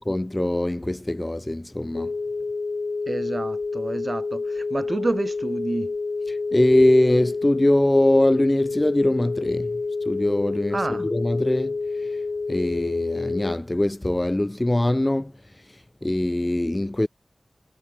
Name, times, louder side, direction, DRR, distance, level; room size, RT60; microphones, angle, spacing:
voice 1, 0.0-2.1 6.3-9.8 10.1-12.2 12.5-15.3 15.7-17.1, left 1 dB, 25° left, 0.5 m, -22 dB
sound 1, 1.9-13.5, left 3 dB, 75° left, 2.2 m, -28 dB
voice 2, 3.1-5.9 10.7-11.1, right 2 dB, 50° right, 1.7 m, -29 dB
wide cardioid pair, 65°, 0 cm